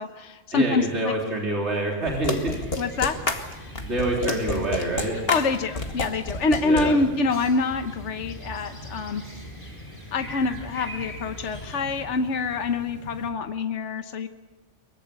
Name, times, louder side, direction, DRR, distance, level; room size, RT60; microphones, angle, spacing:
voice 1, 0.0-1.1 2.8-3.2 5.3-9.2 10.1-14.3, left 3 dB, 70° left, 7 dB, 1.4 m, -26 dB
voice 2, 0.5-2.5 3.8-5.2 6.6-6.9, right 1 dB, 65° right, -2 dB, 3.9 m, -26 dB
sound 1, 2.1-6.8, left 2 dB, 50° left, 2.3 m, -29 dB
sound 2, 2.1-13.3, equal, 30° left, 5.4 m, -45 dB
sound 3, 2.3-12.0, equal, 10° left, 4.7 m, -43 dB
24.0 x 22.5 x 8.3 m, 1.1 s
omnidirectional pair, 1.3 m